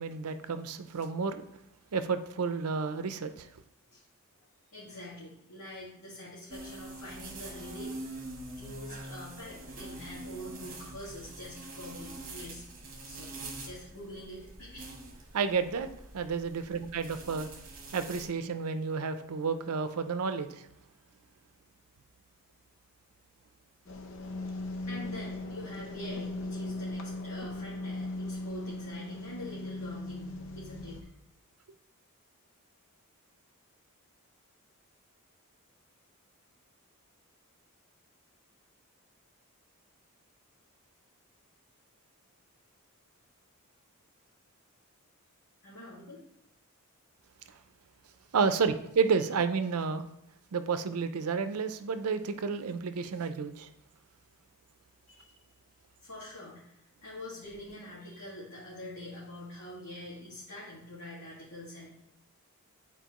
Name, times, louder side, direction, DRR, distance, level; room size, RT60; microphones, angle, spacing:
voice 1, 0.0-1.4 1.9-3.5 15.3-17.5 17.9-20.6 48.3-50.0 50.5-53.7, right 5 dB, 85° right, 10 dB, 0.5 m, -31 dB
voice 2, 4.7-8.2 8.6-12.6 13.0-15.0 24.9-31.1 45.6-46.3 55.1-55.4 56.0-61.9, left 1 dB, 90° left, -8 dB, 2.0 m, -45 dB
sound 1, 6.5-18.3, right 2 dB, 40° right, 1.2 m, -45 dB
sound 2, 23.9-31.0, left 2 dB, 60° left, 0.7 m, -38 dB
9.2 x 4.4 x 3.0 m, 0.81 s
head